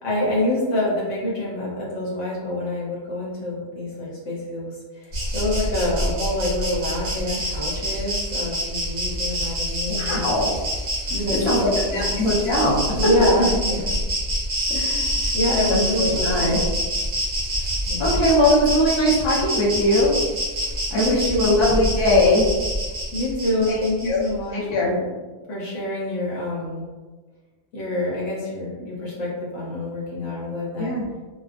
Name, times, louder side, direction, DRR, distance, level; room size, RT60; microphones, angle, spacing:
voice 1, 0.0-10.3 11.1-12.1 12.9-14.0 14.8-16.6 17.9-18.2 20.6-21.7 23.1-25.1 25.5-26.9 27.7-30.9, left 1 dB, 85° left, -6 dB, 1.2 m, -26 dB
Insect, 5.1-24.3, equal, 45° right, 0.7 m, -26 dB
voice 2, 10.0-10.5 11.4-11.6 11.9-12.8 14.7-14.9 15.2-15.3 15.7-16.6 18.0-20.2 20.9-22.5 23.7-24.2 24.5-24.9 30.8-31.0, left 1 dB, 35° left, -5 dB, 0.4 m, -20 dB
2.3 x 2.2 x 2.4 m, 1.3 s
omnidirectional pair, 1.2 m